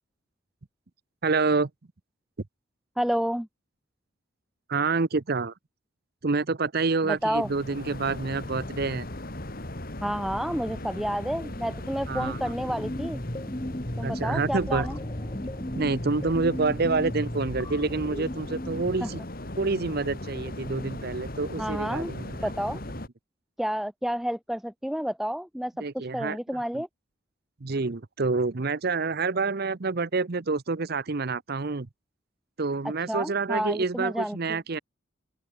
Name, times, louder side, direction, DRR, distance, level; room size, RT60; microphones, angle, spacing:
voice 1, 1.2-1.7 4.7-5.5 6.2-9.1 12.1-12.5 14.0-14.9 15.8-19.2 19.6-22.5 25.8-26.4 26.7-26.8 27.6-31.9 32.6-34.8, right 3 dB, 50° right, 0.7 m, -27 dB
voice 2, 3.0-3.5 7.0-7.5 10.0-13.2 14.0-15.0 19.0-19.1 21.6-22.1 22.4-22.8 23.6-26.9 33.1-34.6, equal, ahead, 0.4 m, -30 dB
sound 1, 7.2-23.1, left 1 dB, 45° left, 2.6 m, -38 dB
sound 2, 12.0-19.1, left 1 dB, 20° left, 1.4 m, -36 dB
open air
head